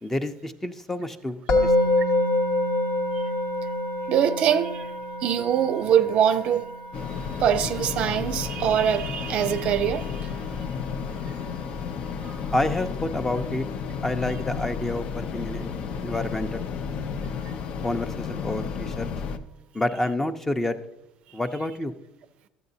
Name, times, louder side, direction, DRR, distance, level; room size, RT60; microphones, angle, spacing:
voice 1, 0.0-1.9 12.5-13.7 14.0-15.7 16.0-16.7 17.8-19.1 19.7-20.8 21.3-21.9, left 1 dB, 15° left, 0.6 m, -29 dB
Musical instrument, 1.5-12.6, left 2 dB, 75° left, 1.2 m, -28 dB
voice 2, 4.1-4.9 5.2-6.7 7.4-10.3 12.2-12.4, right 9 dB, 60° right, 0.4 m, -23 dB
sound 1, 6.9-19.4, left 6 dB, 55° left, 0.5 m, -32 dB
12.5 x 8.0 x 2.7 m
hypercardioid pair, 75°, 2 cm